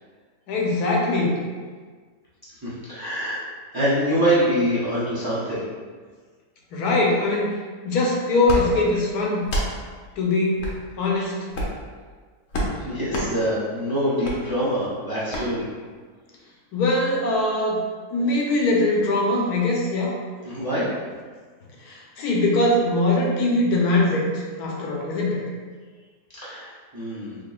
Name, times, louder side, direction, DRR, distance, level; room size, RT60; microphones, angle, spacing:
voice 1, 0.5-1.4 6.7-7.5 7.8-9.5 10.2-10.6 11.0-11.4 16.7-17.8 18.1-20.2 21.8-25.4, left 2 dB, 85° left, -2 dB, 1.3 m, -22 dB
voice 2, 2.6-3.4 3.7-5.6 11.2-11.3 12.6-15.6 20.4-20.9 26.4-27.4, equal, 20° right, -10 dB, 0.8 m, -25 dB
sound 1, 8.4-8.6 9.4-9.7 10.6-10.8 11.5-11.8 12.5-12.7 13.1-13.3 14.2-14.4 15.3-15.5, equal, 65° left, 1.1 m, -26 dB
3.8 x 3.5 x 2.3 m, 1.5 s
omnidirectional pair, 1.6 m